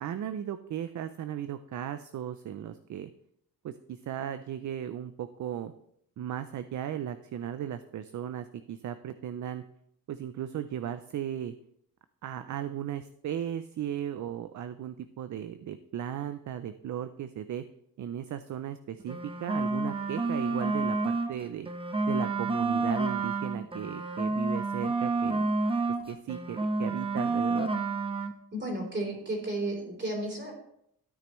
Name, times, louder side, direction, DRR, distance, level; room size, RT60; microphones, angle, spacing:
voice 1, 0.0-3.1 3.6-5.7 6.2-9.6 10.1-11.5 12.2-17.6 18.0-21.7 22.1-25.5 26.1-27.7, right 10 dB, 55° right, 11 dB, 0.5 m, -36 dB
sound 1, 19.0-21.3 21.7-26.0 26.3-28.3, right 3 dB, 15° right, 0.8 m, -29 dB
voice 2, 28.5-30.5, right 1 dB, 30° right, 1 dB, 3.4 m, -33 dB
13.5 x 9.1 x 3.1 m, 0.73 s
wide cardioid pair, 150°, 36 cm